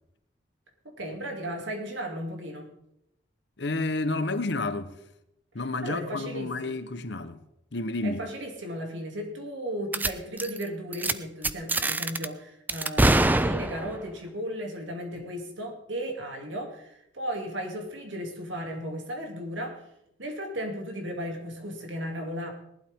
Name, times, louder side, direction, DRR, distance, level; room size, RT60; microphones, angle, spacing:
voice 1, 0.8-2.7 5.8-6.8 8.0-19.8 20.2-22.5, equal, 80° right, 2.7 m, -35 dB
voice 2, 3.6-4.9 5.5-7.4 7.7-8.2, left 2 dB, 65° left, 1.0 m, -30 dB
sound 1, 9.9-10.1 10.4-10.6 10.9-11.1 11.4-12.3 12.7-14.0, right 2 dB, 10° right, 0.4 m, -24 dB
18.5 x 12.0 x 3.6 m
head